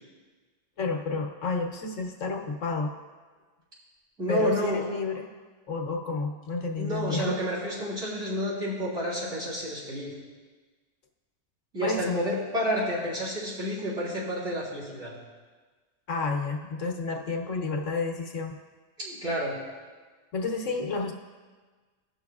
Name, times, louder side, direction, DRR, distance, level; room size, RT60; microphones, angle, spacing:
voice 1, 0.8-2.9 4.3-5.3 5.7-7.4 11.8-12.2 16.1-18.5 20.3-21.1, left 3 dB, 80° left, 2 dB, 1.3 m, -30 dB
voice 2, 4.2-4.9 6.8-10.1 11.7-15.1 19.0-19.6, equal, 80° right, -9 dB, 3.8 m, -30 dB
18.5 x 6.3 x 2.4 m, 1.4 s
omnidirectional pair, 1.3 m